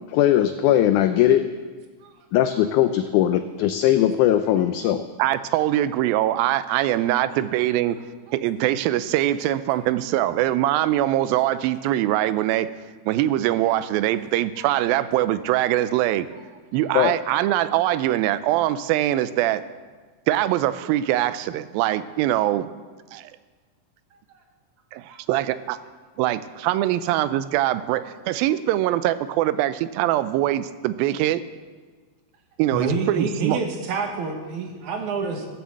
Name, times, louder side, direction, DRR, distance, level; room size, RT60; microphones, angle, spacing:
voice 1, 0.1-1.5 2.3-5.0 16.9-17.1, left 11 dB, 90° left, 9 dB, 1.7 m, -19 dB
voice 2, 5.2-8.0 8.3-12.7 13.1-16.3 16.7-19.6 20.3-22.7 23.1-23.3 24.9-25.8 26.2-31.4 32.6-33.6, right 13 dB, 90° right, 14 dB, 2.4 m, -23 dB
voice 3, 32.7-35.5, right 4 dB, 65° right, 3 dB, 2.4 m, -28 dB
13.5 x 6.9 x 7.5 m, 1.4 s
omnidirectional pair, 4.1 m